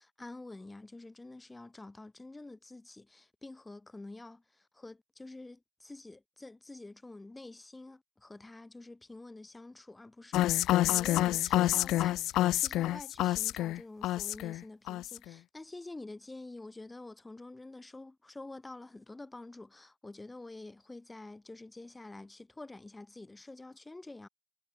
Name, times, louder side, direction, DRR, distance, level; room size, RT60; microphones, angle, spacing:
voice 1, 0.0-24.3, left 2 dB, 5° left, 4.9 m, -48 dB
sound 1, 10.3-14.6 14.9-15.3, left 15 dB, 35° left, 1.4 m, -28 dB
figure-of-eight pair, 90°, 0 cm